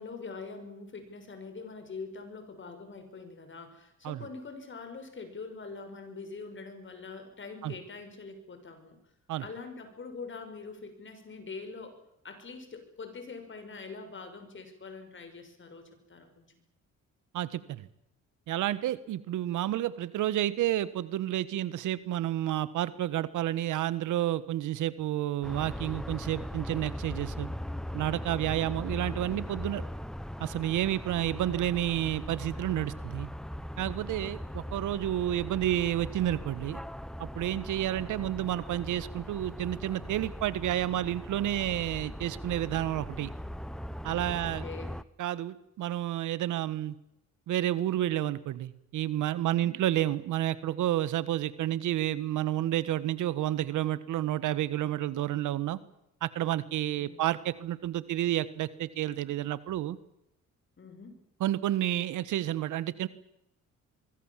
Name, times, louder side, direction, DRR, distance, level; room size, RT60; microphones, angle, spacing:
voice 1, 0.0-9.0 9.4-12.0 12.2-16.5 44.4-45.0 49.4-49.8 51.1-51.4 57.0-57.4 60.8-61.2, left 4 dB, 40° left, 8 dB, 6.4 m, -44 dB
voice 2, 17.3-17.9 18.5-27.5 27.9-29.8 30.4-33.3 33.8-36.8 37.2-43.3 44.0-44.6 45.2-46.9 47.5-55.8 56.2-60.0 61.4-63.1, right 13 dB, 80° right, 16 dB, 1.4 m, -30 dB
sound 1, 25.4-45.0, equal, ahead, 0.8 m, -39 dB
23.5 x 23.5 x 7.5 m, 0.81 s
cardioid pair, 90°, 30 cm